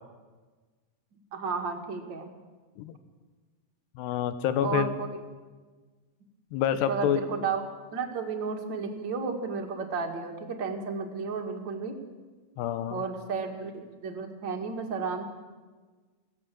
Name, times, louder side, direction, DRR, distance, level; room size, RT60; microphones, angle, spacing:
voice 1, 1.3-2.3 4.6-5.2 6.9-7.6 7.9-12.0 12.9-15.2, right 5 dB, 40° right, 3 dB, 1.9 m, -33 dB
voice 2, 4.0-4.9 6.5-7.2 12.6-13.0, left 9 dB, 85° left, 11 dB, 3.3 m, -27 dB
23.0 x 16.5 x 7.6 m, 1.4 s
omnidirectional pair, 4.7 m